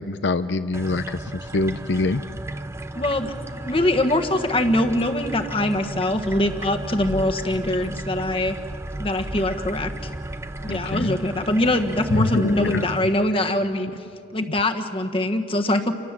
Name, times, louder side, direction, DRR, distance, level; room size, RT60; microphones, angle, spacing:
voice 1, 0.0-2.2 10.7-11.2 12.1-12.8, left 3 dB, 80° left, 11 dB, 0.6 m, -24 dB
sound 1, 0.7-13.0, right 1 dB, 15° right, 0.7 m, -34 dB
voice 2, 2.9-8.6 9.0-9.9 10.6-13.9 14.3-15.9, left 1 dB, 30° left, 5 dB, 1.5 m, -23 dB
29.0 x 24.0 x 7.5 m, 2.5 s
head